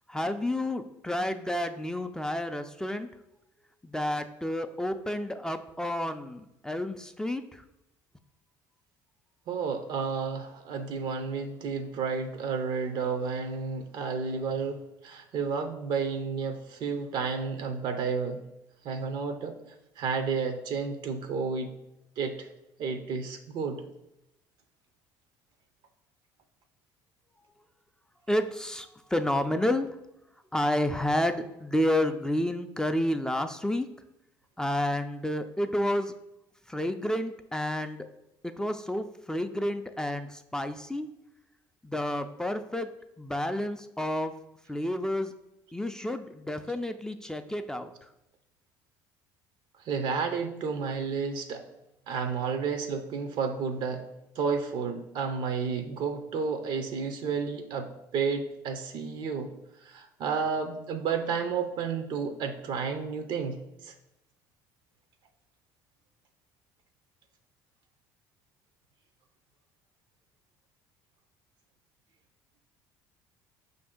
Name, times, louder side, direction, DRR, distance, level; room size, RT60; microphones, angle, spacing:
voice 1, 0.1-3.1 3.8-7.6 28.3-30.0 30.5-33.9 34.6-36.1 36.7-38.1 38.4-41.1 41.8-42.9 43.2-44.3 44.7-45.3 45.7-48.1, left 1 dB, 5° left, 7 dB, 0.3 m, -30 dB
voice 2, 9.5-18.4 18.8-19.6 20.0-21.7 22.2-22.5 22.8-23.8 49.8-51.7 52.1-54.0 54.4-59.5 59.8-63.9, right 5 dB, 60° right, 7 dB, 0.5 m, -31 dB
5.3 x 2.6 x 3.6 m, 0.86 s
supercardioid pair, 80°, 9 cm